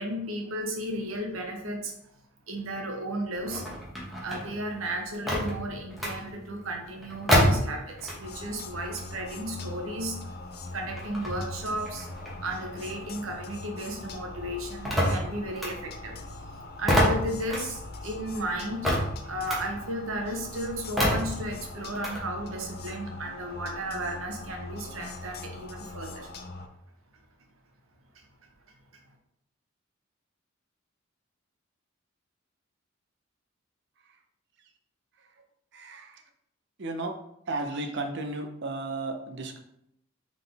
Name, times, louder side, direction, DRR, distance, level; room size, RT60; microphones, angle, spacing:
voice 1, 0.0-1.9 2.5-3.6 4.2-10.2 10.7-12.1 12.4-16.1 16.8-18.9 19.2-26.3, right 1 dB, 85° right, 2 dB, 0.9 m, -34 dB
sound 1, 3.3-8.5 8.8-13.7 14.0-22.2, equal, ahead, 1.0 m, -29 dB
sound 2, 8.2-26.7, left 2 dB, 50° left, 0.5 m, -42 dB
voice 2, 35.7-36.2 36.8-37.1 37.5-39.6, right 2 dB, 55° right, 5 dB, 0.6 m, -34 dB
4.0 x 3.7 x 3.4 m, 0.77 s
head